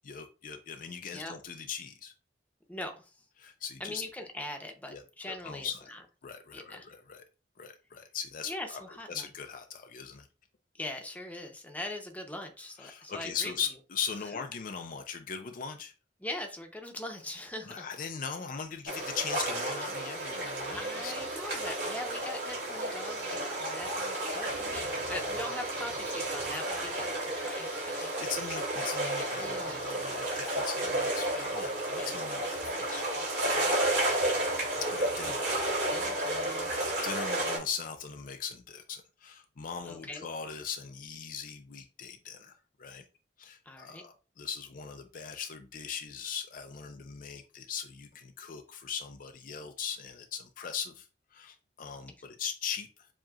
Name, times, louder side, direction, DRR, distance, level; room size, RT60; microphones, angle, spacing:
voice 1, 0.0-2.1 3.4-4.0 4.9-5.0 5.3-5.9 6.2-7.2 7.6-8.8 9.1-10.3 12.8-15.9 17.6-21.1 27.9-33.0 34.8-35.5 36.7-43.0 43.4-53.1, left 7 dB, 50° left, 6 dB, 0.5 m, -40 dB
voice 2, 2.7-3.1 3.8-6.0 6.5-6.9 8.4-9.2 10.8-13.5 16.2-17.9 20.8-28.1 29.4-29.8 32.0-32.1 32.7-33.0 33.4-33.7 35.9-36.7 39.9-40.2 43.7-44.0, left 1 dB, 10° left, 3 dB, 0.8 m, -41 dB
sound 1, 18.9-37.6, right 1 dB, 75° right, 2.7 m, -32 dB
7.2 x 2.9 x 2.5 m, 0.33 s
head